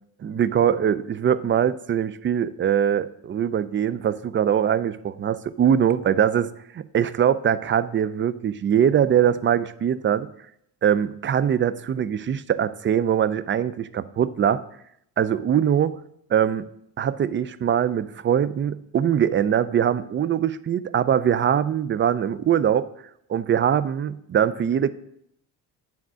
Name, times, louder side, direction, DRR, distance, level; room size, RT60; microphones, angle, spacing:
voice 1, 0.2-6.5 6.7-10.3 10.8-14.6 15.2-16.0 16.3-16.7 17.0-22.9 23.3-24.9, right 9 dB, 30° right, 15 dB, 0.4 m, -22 dB
9.0 x 3.6 x 6.2 m, 0.74 s
cardioid pair, 85°, 41 cm